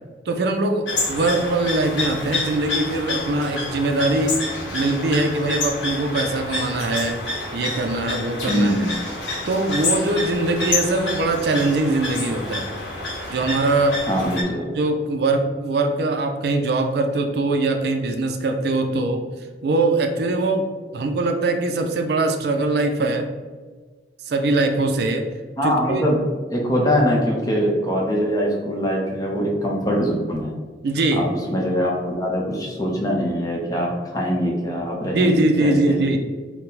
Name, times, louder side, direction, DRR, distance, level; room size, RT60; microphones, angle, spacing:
voice 1, 0.3-4.4 4.7-7.2 7.5-8.9 9.5-12.6 13.3-14.0 14.7-19.2 19.6-23.3 24.3-25.3 25.6-26.0 30.8-31.3 35.1-36.2, right 2 dB, 60° right, 4 dB, 0.4 m, -22 dB
sound 1, 0.9-14.4, left 2 dB, 85° left, 1.0 m, -28 dB
voice 2, 8.4-8.9 14.1-14.7 25.6-26.2 26.5-30.5 31.1-36.0, equal, 20° left, -2 dB, 0.7 m, -23 dB
4.2 x 2.1 x 3.9 m, 1.4 s
head